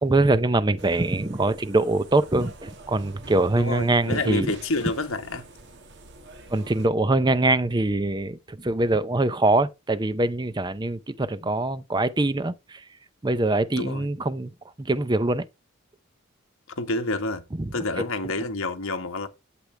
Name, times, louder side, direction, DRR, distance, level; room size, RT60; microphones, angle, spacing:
voice 1, 0.0-4.5 6.5-12.8 13.2-14.5 14.8-15.5 17.6-17.7, right 2 dB, 20° right, 0.6 m, -23 dB
sound 1, 0.8-6.9, right 2 dB, 55° right, 1.9 m, -46 dB
voice 2, 3.5-5.4 13.7-14.1 16.8-17.4 17.7-19.3, left 2 dB, 75° left, 1.5 m, -28 dB
11.5 x 7.8 x 3.4 m
head